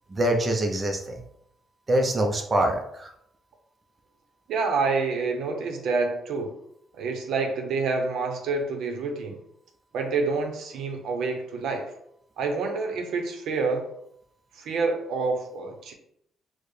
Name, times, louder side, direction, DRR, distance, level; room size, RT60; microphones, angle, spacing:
voice 1, 0.1-1.2 1.9-3.1, right 1 dB, 25° right, 2 dB, 0.5 m, -24 dB
voice 2, 4.5-6.6 7.0-9.4 9.9-11.9 12.4-13.9 14.5-15.9, right 4 dB, 75° right, 4 dB, 0.6 m, -27 dB
4.6 x 2.1 x 3.1 m, 0.73 s
cardioid pair, 125°, 0 cm